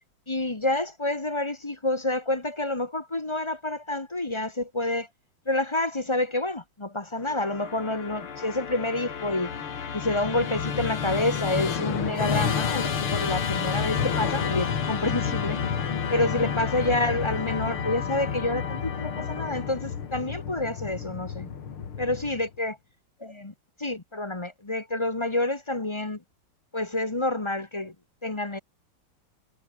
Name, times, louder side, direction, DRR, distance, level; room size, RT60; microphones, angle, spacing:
voice 1, 0.3-5.1 5.5-9.5 9.9-15.6 16.1-21.5 22.0-22.7 23.2-26.2 26.7-27.9 28.2-28.6, left 2 dB, 20° left, 1.0 m, -28 dB
Musical instrument, 7.2-22.6, left 7 dB, 80° left, 3.1 m, -30 dB
omnidirectional pair, 2.3 m